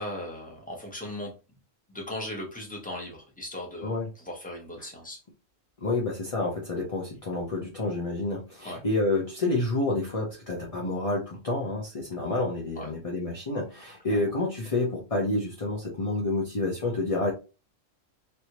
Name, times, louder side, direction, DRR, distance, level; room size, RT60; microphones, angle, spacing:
voice 1, 0.0-1.3 1.9-5.2 8.6-8.8 12.8-12.9 14.1-14.2, left 1 dB, 5° left, -2 dB, 1.0 m, -38 dB
voice 2, 5.8-17.3, left 2 dB, 35° left, -2 dB, 0.7 m, -29 dB
3.3 x 2.7 x 2.9 m, 0.31 s
omnidirectional pair, 1.3 m